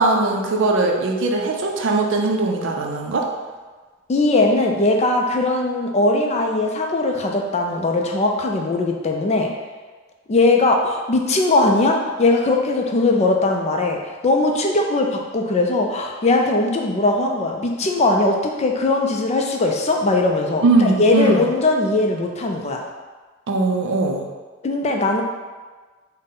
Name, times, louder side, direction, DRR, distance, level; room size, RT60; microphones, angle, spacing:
voice 1, 0.0-3.3 20.6-21.5 23.5-24.3, right 3 dB, 65° right, 2 dB, 0.4 m, -20 dB
voice 2, 4.1-9.5 10.3-14.0 14.2-22.8 24.6-25.2, left 2 dB, 30° left, 2 dB, 0.4 m, -19 dB
4.0 x 2.1 x 3.6 m, 1.3 s
head